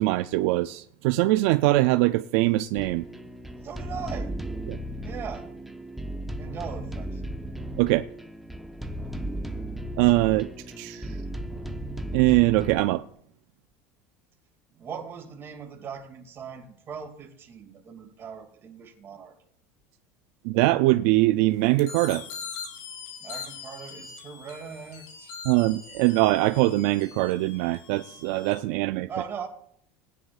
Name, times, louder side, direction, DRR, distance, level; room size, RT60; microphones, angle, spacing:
voice 1, 0.0-3.1 4.7-4.8 7.8-8.0 10.0-10.5 10.8-11.2 12.1-13.0 20.4-22.2 25.5-29.1, right 18 dB, 70° right, 0.4 m, -22 dB
sound 1, 2.8-12.8, right 1 dB, ahead, 0.8 m, -35 dB
voice 2, 3.6-4.3 5.0-5.5 6.3-7.2 14.7-19.3 23.2-25.4 29.1-29.5, right 6 dB, 35° right, 2.4 m, -39 dB
sound 2, 21.8-28.6, left 6 dB, 70° left, 2.7 m, -42 dB
19.0 x 9.9 x 2.4 m
supercardioid pair, 125°, 7 cm